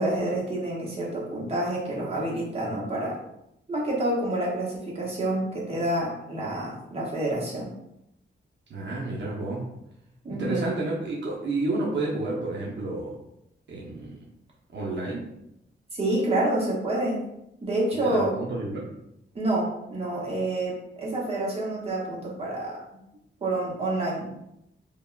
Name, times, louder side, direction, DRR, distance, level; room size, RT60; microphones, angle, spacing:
voice 1, 0.0-3.2 3.7-7.7 10.2-10.7 15.9-17.2 17.6-18.3 19.3-22.8 23.4-24.3, right 1 dB, 30° right, -5 dB, 0.8 m, -28 dB
voice 2, 8.7-9.7 10.4-13.2 13.7-14.2 14.7-15.2 18.0-18.9, right 2 dB, 65° right, -4 dB, 0.6 m, -30 dB
3.3 x 2.2 x 2.3 m, 0.82 s
wide cardioid pair, 145°, 20 cm